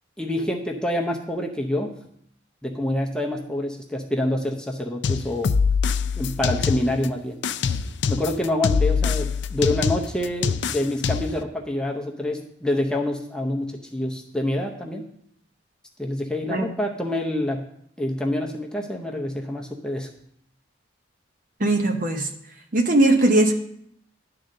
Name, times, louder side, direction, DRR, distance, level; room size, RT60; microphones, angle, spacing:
voice 1, 0.2-1.9 2.6-5.5 6.2-7.4 8.1-15.0 16.0-17.7 18.0-20.1, left 1 dB, 5° left, 0 dB, 0.7 m, -26 dB
sound 1, 5.0-7.1 7.4-11.4, left 5 dB, 60° left, 0.4 m, -24 dB
voice 2, 21.6-22.3 22.7-23.5, right 2 dB, 45° right, 5 dB, 0.9 m, -19 dB
11.0 x 3.8 x 6.5 m, 0.71 s
head